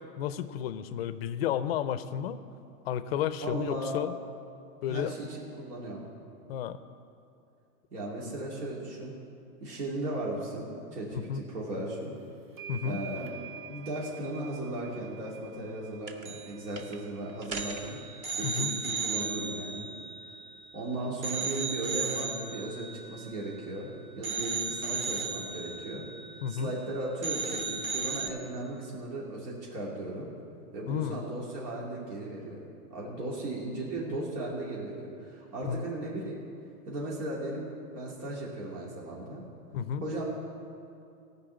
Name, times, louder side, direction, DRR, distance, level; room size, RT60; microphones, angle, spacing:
voice 1, 0.2-2.4 2.8-4.1 4.8-5.1 6.5-6.8 11.1-11.4 12.7-13.0 18.4-18.8 26.4-26.7 30.9-31.2 35.6-35.8 39.7-40.0, left 9 dB, 40° left, 13 dB, 0.5 m, -32 dB
voice 2, 3.4-4.0 4.9-6.0 7.9-9.1 9.6-12.2 12.8-13.4 13.7-18.0 18.3-19.9 20.7-23.9 24.2-26.1 26.5-30.3 30.7-36.4 36.9-37.7 37.9-39.4 40.0-40.4, right 1 dB, 80° right, -5 dB, 2.8 m, -36 dB
sound 1, 12.0-12.1 12.6-17.4, right 9 dB, 55° right, 1.4 m, -48 dB
sound 2, 16.1-16.5 16.8-17.0 17.4-20.8 21.2-23.8 24.2-26.9 27.2-28.3, right 4 dB, 20° right, 0.5 m, -35 dB
16.0 x 5.6 x 8.1 m, 2.5 s
supercardioid pair, 150°, 47 cm